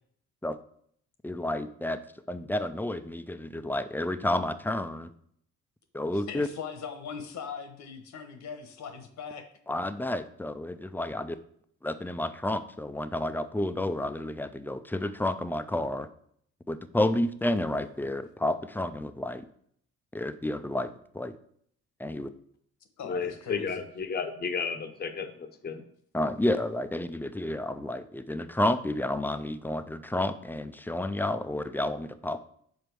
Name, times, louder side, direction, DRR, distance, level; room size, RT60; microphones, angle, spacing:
voice 1, 1.2-2.0 2.3-5.1 5.9-6.5 9.7-11.4 11.8-16.1 16.7-19.4 20.1-21.3 22.0-22.3 26.1-32.4, left 1 dB, 5° left, 11 dB, 0.4 m, -30 dB
voice 2, 6.3-9.5 23.0-23.8, left 6 dB, 70° left, 7 dB, 1.2 m, -40 dB
voice 3, 23.0-25.8, left 5 dB, 35° left, 7 dB, 0.8 m, -33 dB
5.2 x 4.4 x 6.1 m, 0.66 s
cardioid pair, 90°, 30 cm